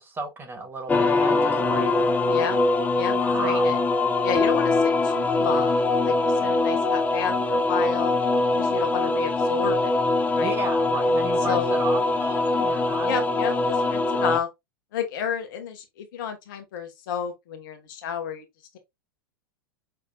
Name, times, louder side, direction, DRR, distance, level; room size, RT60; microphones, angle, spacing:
voice 1, 0.0-2.2 3.1-4.0 10.4-13.2, right 3 dB, 15° right, 1.4 m, -34 dB
sound 1, 0.9-14.4, left 2 dB, 15° left, 0.6 m, -23 dB
voice 2, 2.3-2.6 2.9-3.8 4.2-8.1 8.5-10.0 10.3-10.6 11.5-11.7 13.0-14.5 14.9-18.4, left 8 dB, 55° left, 1.4 m, -31 dB
5.9 x 3.3 x 2.3 m
figure-of-eight pair, 95°, 13 cm